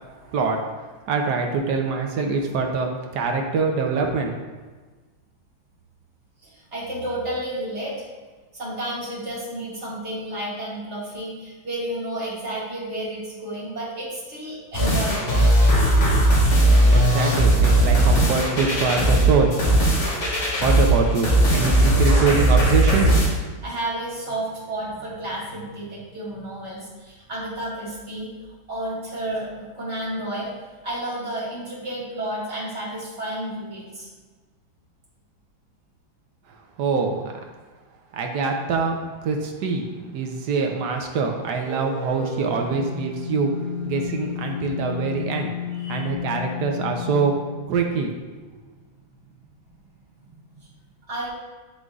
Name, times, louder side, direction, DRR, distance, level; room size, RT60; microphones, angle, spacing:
voice 1, 0.3-4.4 16.9-19.8 20.6-23.2 36.5-37.2 38.1-43.5 43.9-45.5 45.9-47.3 47.7-48.1, right 4 dB, 70° right, 2 dB, 1.1 m, -24 dB
voice 2, 6.4-8.1 8.5-15.3 23.6-28.3 28.7-30.5 30.8-34.1 45.7-46.1 50.2-50.7 51.1-51.3, right 1 dB, 35° right, -7 dB, 2.1 m, -31 dB
sound 1, 14.7-23.3, right 1 dB, 75° left, 2.1 m, -18 dB
sound 2, 41.6-47.7, left 7 dB, 45° left, 1.3 m, -32 dB
10.5 x 3.8 x 2.4 m, 1.3 s
omnidirectional pair, 2.2 m